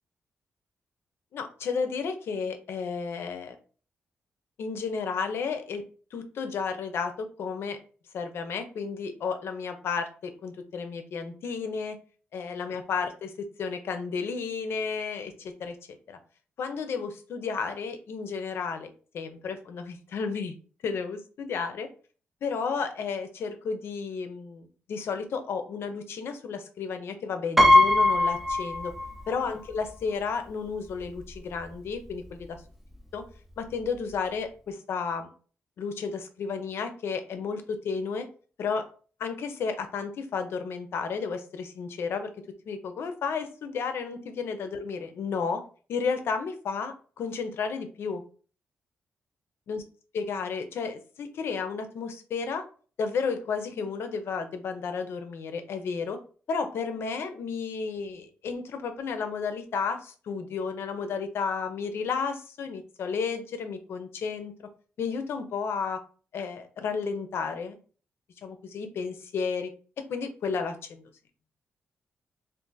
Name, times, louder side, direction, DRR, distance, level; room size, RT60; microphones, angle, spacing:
voice 1, 1.3-3.5 4.6-5.8 6.1-7.8 8.1-12.0 12.3-15.8 16.1-16.2 16.6-20.6 20.8-21.9 22.4-28.9 29.3-32.6 33.1-33.2 33.6-35.3 35.8-38.3 38.6-38.9 39.2-42.3 42.7-45.6 45.9-48.2 49.7-49.8 50.1-52.6 53.0-56.2 56.5-64.5 65.0-66.0 66.3-67.8 68.4-69.7 70.1-71.0, left 5 dB, 70° left, 8 dB, 0.5 m, -32 dB
Piano, 27.6-29.4 29.7-29.8 31.0-31.1 31.4-31.6, left 2 dB, 5° right, 0.4 m, -21 dB
2.5 x 2.4 x 3.8 m, 0.40 s
wide cardioid pair, 145°, 4 cm